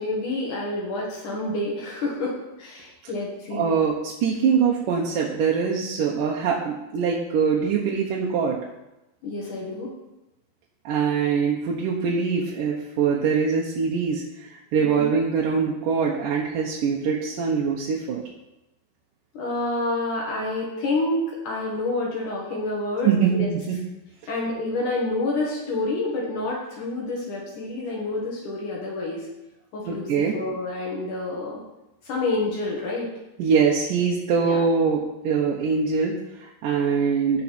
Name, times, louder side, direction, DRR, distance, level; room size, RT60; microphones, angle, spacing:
voice 1, 0.0-3.7 9.2-9.9 14.9-15.1 19.3-23.5 24.3-29.3 29.7-31.6 32.0-33.1 34.4-34.6, left 2 dB, 60° left, -3 dB, 3.2 m, -28 dB
voice 2, 3.5-8.6 10.9-18.2 23.0-23.7 29.9-30.4 33.4-37.4, right 6 dB, 70° right, -3 dB, 2.4 m, -23 dB
16.0 x 5.6 x 4.3 m, 0.95 s
omnidirectional pair, 4.3 m